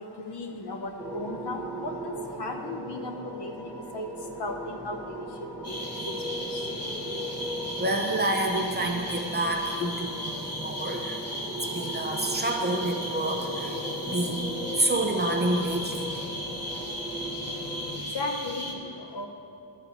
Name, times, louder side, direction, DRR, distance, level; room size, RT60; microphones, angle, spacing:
voice 1, 0.2-4.1 4.4-5.0 5.7-5.8 6.1-6.6 9.8-9.9 18.1-19.3, left 2 dB, 60° left, 4 dB, 1.0 m, -36 dB
sound 1, 1.0-18.0, right 1 dB, 5° left, 0.9 m, -37 dB
sound 2, 5.6-18.7, equal, 35° left, 1.2 m, -36 dB
voice 2, 7.8-10.1 10.4-11.2 11.5-16.2, right 1 dB, 20° right, 2 dB, 0.7 m, -28 dB
12.0 x 4.1 x 7.1 m, 2.8 s
wide cardioid pair, 135°, 46 cm